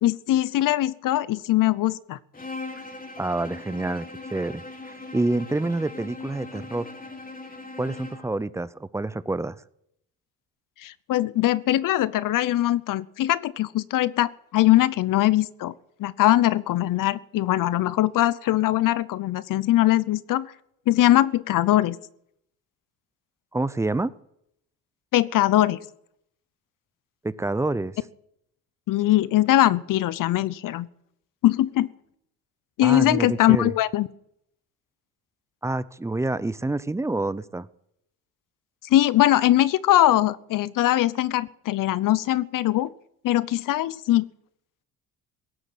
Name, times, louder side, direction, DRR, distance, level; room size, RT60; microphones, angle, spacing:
voice 1, 0.0-2.2 10.8-15.7 16.0-20.5 20.9-22.0 25.1-25.8 28.9-30.9 31.4-31.9 32.8-34.1 38.9-42.9 43.2-44.2, left 14 dB, 60° left, 19 dB, 0.8 m, -21 dB
Bowed string instrument, 2.3-8.4, left 3 dB, 25° left, 2.7 m, -40 dB
voice 2, 3.2-6.9 7.8-9.6 23.5-24.1 27.2-28.0 32.8-33.7 35.6-37.7, right 2 dB, 10° right, 17 dB, 0.5 m, -27 dB
17.5 x 8.0 x 7.9 m, 0.76 s
cardioid pair, 95°, 36 cm